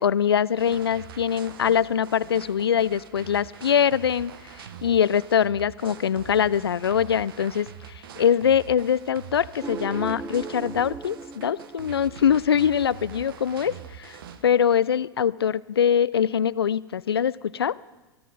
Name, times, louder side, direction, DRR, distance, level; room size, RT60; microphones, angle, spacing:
voice 1, 0.0-4.3 4.6-14.2 14.4-17.8, left 8 dB, 80° left, 21 dB, 0.4 m, -23 dB
sound 1, 0.6-14.4, right 8 dB, 65° right, 1.1 m, -44 dB
sound 2, 9.6-13.0, right 4 dB, 15° right, 0.5 m, -38 dB
21.5 x 14.0 x 4.0 m, 1.1 s
figure-of-eight pair, 95°, 13 cm